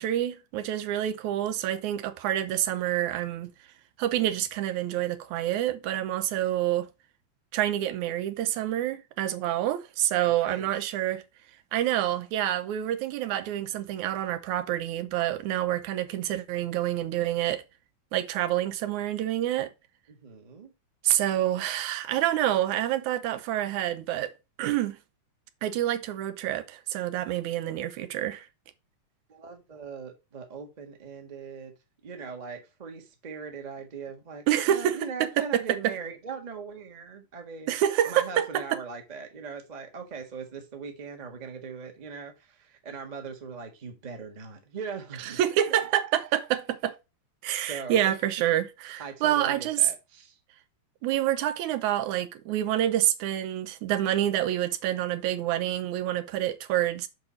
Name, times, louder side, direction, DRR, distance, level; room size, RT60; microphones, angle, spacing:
voice 1, 0.0-3.5 4.0-6.9 7.5-11.2 11.7-17.6 18.1-19.7 21.0-24.3 24.6-25.0 25.6-28.5 34.5-35.0 35.4-35.6 37.7-38.5 45.4-47.0 47.4-49.8 51.0-57.1, right 12 dB, 90° right, 2.3 m, -27 dB
voice 2, 10.2-10.7 20.1-20.7 29.3-31.7 32.0-37.7 38.1-45.4 45.7-45.8 47.7-48.2 49.0-50.4, right 5 dB, 30° right, 0.7 m, -40 dB
6.6 x 5.3 x 4.1 m
omnidirectional pair, 3.4 m